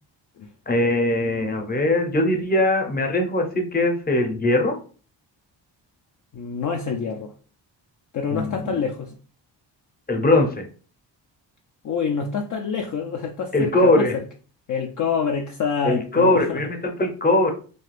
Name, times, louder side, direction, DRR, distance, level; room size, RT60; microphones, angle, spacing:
voice 1, 0.7-4.8 8.3-8.8 10.1-10.6 13.5-14.1 15.8-17.5, left 2 dB, 20° left, 0.8 m, -21 dB
voice 2, 6.3-7.3 8.1-9.2 11.8-14.2 14.7-16.7, left 6 dB, 45° left, 0.5 m, -27 dB
2.5 x 2.3 x 3.2 m
cardioid pair, 80°, 44 cm